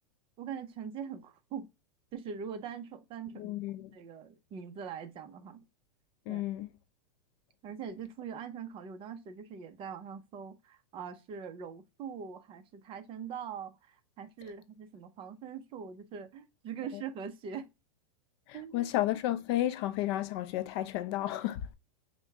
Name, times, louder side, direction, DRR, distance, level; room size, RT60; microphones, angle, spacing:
voice 1, 0.4-1.7 2.1-3.6 3.9-5.6 6.3-6.4 7.6-17.7 18.5-18.9, right 7 dB, 30° right, 0.6 m, -42 dB
voice 2, 3.4-3.9 6.3-6.7 18.5-21.6, left 14 dB, 45° left, 0.4 m, -32 dB
5.1 x 2.2 x 3.4 m
supercardioid pair, 145°, 19 cm